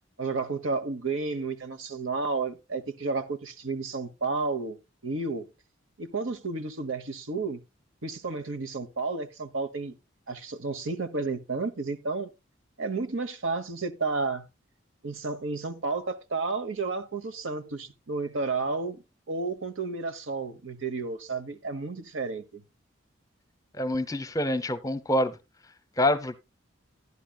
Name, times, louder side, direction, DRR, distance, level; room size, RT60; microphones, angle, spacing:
voice 1, 0.2-5.5 6.0-7.6 8.0-9.9 10.3-12.3 12.8-14.5 15.0-22.6, right 3 dB, 80° right, 1.2 m, -32 dB
voice 2, 23.8-25.4 26.0-26.4, left 1 dB, 15° left, 0.7 m, -26 dB
11.5 x 11.0 x 2.3 m
head